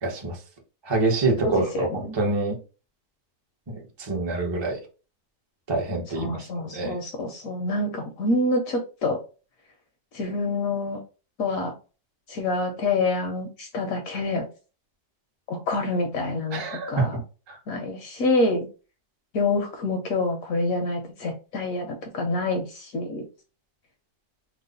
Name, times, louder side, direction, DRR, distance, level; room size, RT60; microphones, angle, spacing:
voice 1, 0.0-0.4 0.8-2.6 3.7-4.8 5.7-7.0 16.5-17.1 17.5-17.6, right 3 dB, 45° right, 0 dB, 0.3 m, -26 dB
voice 2, 1.4-2.2 6.1-9.2 10.1-11.0 11.4-11.7 12.3-14.5 15.5-16.6 16.9-17.2 17.7-18.7 19.3-23.2, left 2 dB, 65° left, 4 dB, 0.9 m, -27 dB
3.1 x 2.0 x 3.8 m, 0.34 s
omnidirectional pair, 1.9 m